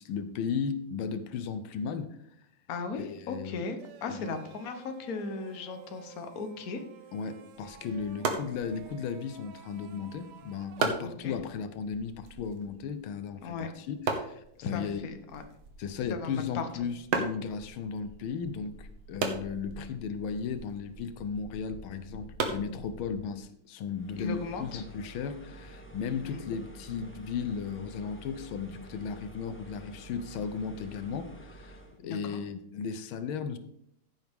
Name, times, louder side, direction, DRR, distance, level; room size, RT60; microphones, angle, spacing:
voice 1, 0.0-2.5 2.9-3.7 4.1-4.4 7.1-15.1 15.8-33.6, left 6 dB, 85° left, 11 dB, 1.6 m, -36 dB
voice 2, 2.7-6.8 11.0-11.3 13.4-13.7 14.6-15.4 16.1-16.6 24.2-24.8 26.2-26.4 32.0-32.4, left 4 dB, 50° left, 7 dB, 1.4 m, -37 dB
sound 1, 3.8-10.8, right 8 dB, 65° right, 1.3 m, -52 dB
sound 2, 7.5-23.4, right 4 dB, 85° right, 2.1 m, -38 dB
sound 3, 23.9-32.0, right 1 dB, 5° left, 1.2 m, -49 dB
15.0 x 8.1 x 3.6 m, 0.73 s
omnidirectional pair, 2.2 m